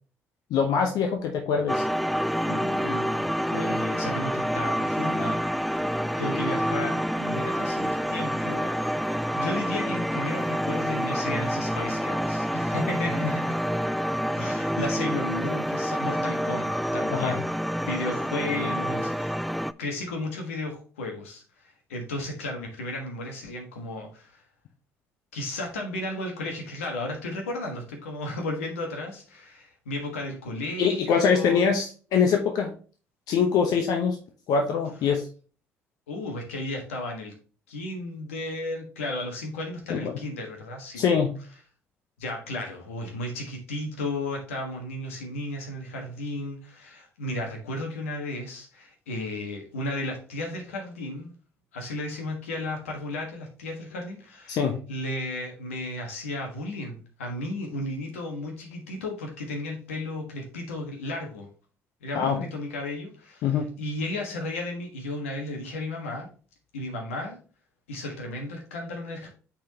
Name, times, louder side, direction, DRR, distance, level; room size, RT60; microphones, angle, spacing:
voice 1, 0.5-1.8 17.1-17.4 30.8-32.8 33.3-34.2 34.5-35.3 39.9-40.1 41.0-41.3 54.5-54.8 62.1-62.4 63.4-63.7, left 6 dB, 65° left, 3 dB, 0.9 m, -23 dB
sound 1, 1.7-19.7, equal, ahead, 0.3 m, -28 dB
voice 2, 2.5-5.5 6.2-8.8 9.1-13.5 14.3-17.4 17.8-19.4 19.8-24.4 25.3-31.7 36.1-37.3 37.7-41.0 42.2-51.3 51.7-61.5 62.0-66.3 66.7-67.4 67.9-69.3, left 1 dB, 85° left, 2 dB, 1.4 m, -34 dB
8.5 x 4.2 x 2.8 m, 0.39 s
hypercardioid pair, 55°, 7 cm